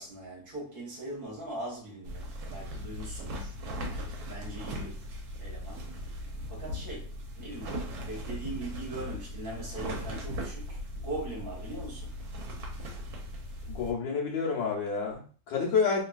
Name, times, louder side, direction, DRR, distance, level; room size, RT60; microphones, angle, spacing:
voice 1, 0.0-5.1 5.4-5.8 6.5-12.1, right 1 dB, 35° right, 1.0 m, -41 dB
sound 1, 2.0-13.9, equal, 65° right, 1.0 m, -38 dB
voice 2, 13.7-16.0, left 5 dB, 75° left, 1.4 m, -29 dB
3.2 x 2.7 x 2.3 m
omnidirectional pair, 2.1 m